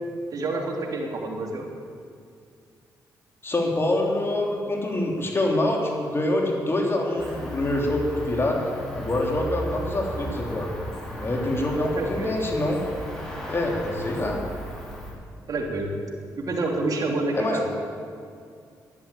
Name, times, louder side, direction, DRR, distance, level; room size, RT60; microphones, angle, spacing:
voice 1, 0.3-1.6 7.1-7.3 11.6-12.3 15.5-15.9 16.4-17.7, right 2 dB, 55° right, 1 dB, 2.9 m, -28 dB
voice 2, 3.4-8.6 8.9-10.7 11.1-12.8 13.5-14.4 17.4-17.6, left 1 dB, 35° left, 0 dB, 3.1 m, -25 dB
Cricket, 7.2-15.1, equal, 10° left, 4.7 m, -36 dB
12.0 x 11.0 x 8.7 m, 2.3 s
cardioid pair, 70°, 7 cm